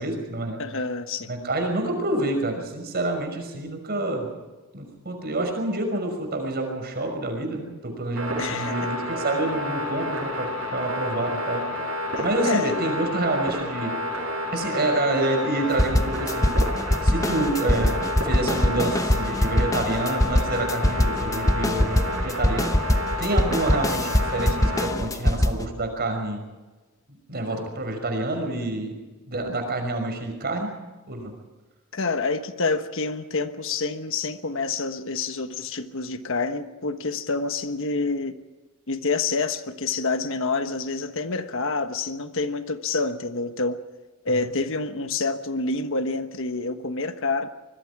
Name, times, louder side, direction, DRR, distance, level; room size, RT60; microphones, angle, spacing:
voice 1, 0.0-0.6 1.3-4.3 4.7-11.9 12.2-14.0 14.5-16.5 17.0-26.4 27.1-29.0 29.3-30.7 31.1-31.3, right 2 dB, 50° right, 5 dB, 5.9 m, -28 dB
voice 2, 0.6-1.3 8.4-8.9 12.4-12.9 31.9-38.3 38.9-43.8 44.2-47.5, left 3 dB, 65° left, 9 dB, 1.3 m, -27 dB
sound 1, 8.2-24.9, left 1 dB, 80° right, 6.9 m, -30 dB
sound 2, 15.8-25.6, left 1 dB, 15° left, 1.0 m, -23 dB
25.5 x 21.5 x 4.8 m, 1.2 s
head